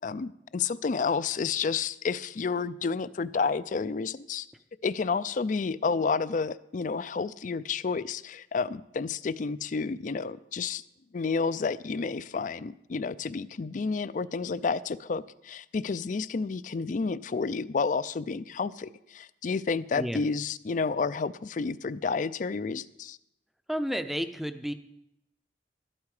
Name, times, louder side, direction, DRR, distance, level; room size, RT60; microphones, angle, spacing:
voice 1, 0.0-4.5 4.8-10.8 11.1-23.2, left 4 dB, 45° left, 17 dB, 0.4 m, -30 dB
voice 2, 23.7-24.7, equal, ahead, 9 dB, 0.6 m, -31 dB
12.5 x 12.0 x 4.9 m, 0.84 s
head